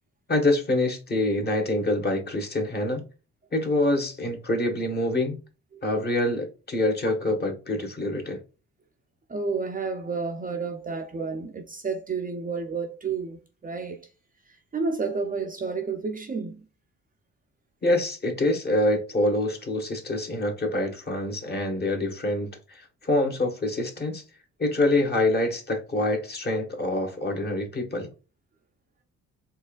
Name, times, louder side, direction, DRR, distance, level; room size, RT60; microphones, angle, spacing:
voice 1, 0.3-3.0 3.5-5.4 5.8-8.4 17.8-24.2 24.6-28.1, left 1 dB, 35° left, 1.5 m, -26 dB
voice 2, 9.3-14.0 14.7-16.6, right 4 dB, 30° right, 0.6 m, -31 dB
4.4 x 3.1 x 2.4 m
cardioid pair, 90°, 30 cm